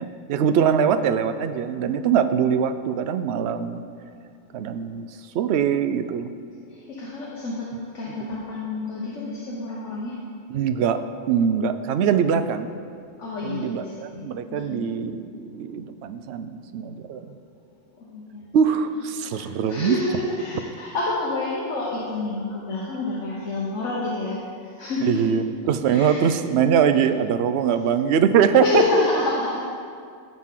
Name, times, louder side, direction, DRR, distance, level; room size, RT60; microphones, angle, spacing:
voice 1, 0.0-3.8 4.5-5.1 5.3-6.3 8.2-8.3 10.5-12.7 13.4-17.4 18.5-20.0 25.0-28.8, right 7 dB, 65° right, 10 dB, 0.8 m, -22 dB
voice 2, 6.7-10.2 13.2-14.9 18.0-18.4 19.3-25.4 25.9-26.2 28.6-29.7, left 3 dB, 70° left, -5 dB, 1.5 m, -28 dB
15.0 x 6.2 x 3.7 m, 2.2 s
omnidirectional pair, 1.3 m